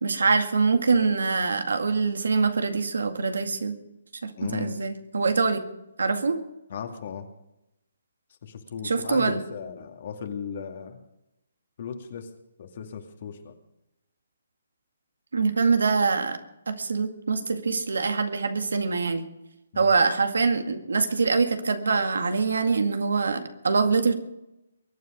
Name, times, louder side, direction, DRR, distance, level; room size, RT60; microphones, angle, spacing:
voice 1, 0.0-3.8 4.2-5.6 6.0-6.4 8.8-9.4 15.3-16.4 16.7-19.3 19.8-24.1, right 4 dB, 80° right, 7 dB, 2.0 m, -24 dB
voice 2, 4.4-4.7 6.7-7.3 8.4-11.0 11.8-12.3 12.6-13.5 19.7-19.9, left 7 dB, 50° left, 5 dB, 2.3 m, -36 dB
23.0 x 9.6 x 5.2 m, 0.88 s
hypercardioid pair, 150°, 0 cm